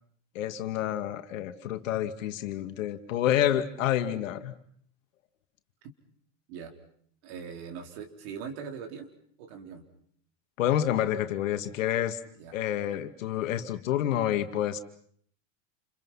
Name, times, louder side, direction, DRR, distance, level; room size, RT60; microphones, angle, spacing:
voice 1, 0.3-4.5 10.6-12.2 12.5-14.8, left 11 dB, 80° left, 8 dB, 2.3 m, -28 dB
voice 2, 7.2-9.1 9.4-9.8 12.4-12.5, right 6 dB, 60° right, 5 dB, 4.2 m, -41 dB
29.5 x 27.5 x 5.7 m, 0.62 s
supercardioid pair, 140°, 38 cm